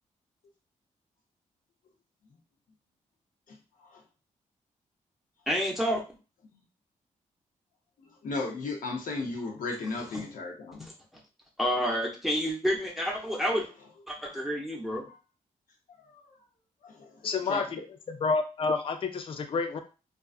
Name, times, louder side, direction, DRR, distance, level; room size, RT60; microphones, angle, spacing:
voice 1, 5.5-6.0 10.1-10.2 10.8-10.9 11.6-13.7 14.1-15.1, equal, ahead, -2 dB, 0.7 m, -29 dB
voice 2, 8.2-10.8 14.2-14.3 16.1-16.2 16.8-17.6, left 3 dB, 80° left, 1 dB, 0.8 m, -35 dB
voice 3, 17.2-17.7 18.1-19.8, left 4 dB, 40° left, 6 dB, 0.4 m, -29 dB
2.5 x 2.2 x 2.4 m, 0.33 s
cardioid pair, 70°, 14 cm